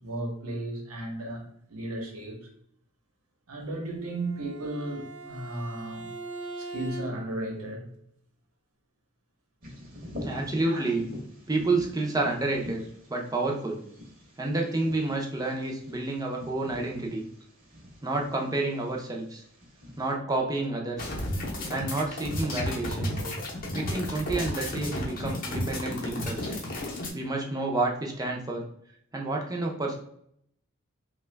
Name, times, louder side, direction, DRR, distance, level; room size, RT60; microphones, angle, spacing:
voice 1, 0.0-2.5 3.5-6.1 6.6-7.9 10.7-10.9, right 1 dB, 85° right, 0.9 m, -35 dB
Bowed string instrument, 4.0-7.4, right 3 dB, 65° right, 0.5 m, -41 dB
Bird vocalization bird call bird song, 9.6-20.1, left 1 dB, 40° right, 0.8 m, -45 dB
voice 2, 10.2-11.0 11.5-12.8 13.1-13.8 14.4-17.2 18.0-19.4 20.0-21.2 21.7-23.1 23.7-26.5 27.1-28.6 29.1-29.9, right 2 dB, 15° right, 0.5 m, -29 dB
sound 1, 21.0-27.1, left 1 dB, 40° left, 0.7 m, -32 dB
2.9 x 2.2 x 3.3 m
head